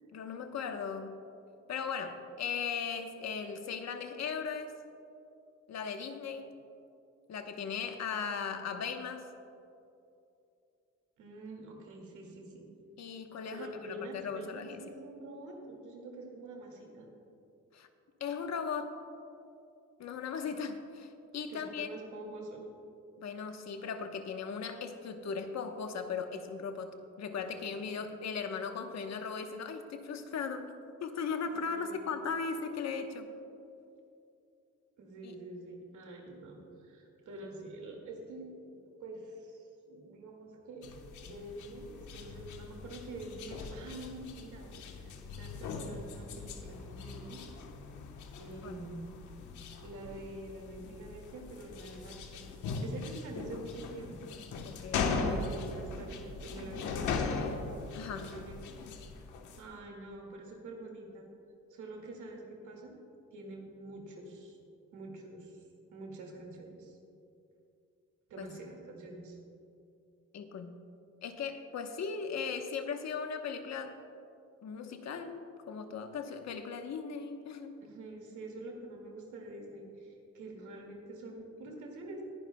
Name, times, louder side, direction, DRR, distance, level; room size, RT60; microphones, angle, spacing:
voice 1, 0.1-1.2 1.7-4.7 5.7-6.5 7.3-9.3 13.0-14.8 17.7-17.9 18.2-18.9 20.0-21.9 23.2-30.7 31.0-33.3 35.2-35.3 48.6-48.8 54.6-55.1 57.9-58.3 68.4-68.5 70.3-70.8 71.2-74.0 74.6-77.8, left 6 dB, 60° left, 6 dB, 1.1 m, -38 dB
voice 2, 11.2-12.7 13.5-17.1 21.5-22.6 27.9-28.1 31.5-32.1 35.0-40.9 41.2-47.4 48.3-49.2 49.8-52.5 52.8-54.3 55.0-57.5 58.1-58.6 59.6-61.3 61.7-62.9 63.3-64.6 64.9-65.6 65.9-67.0 68.3-69.4 77.8-82.2, right 2 dB, 75° right, 0 dB, 2.2 m, -46 dB
sound 1, 40.8-59.7, left 4 dB, 80° left, 1.2 m, -39 dB
19.5 x 11.0 x 2.2 m, 2.7 s
cardioid pair, 90°, 30 cm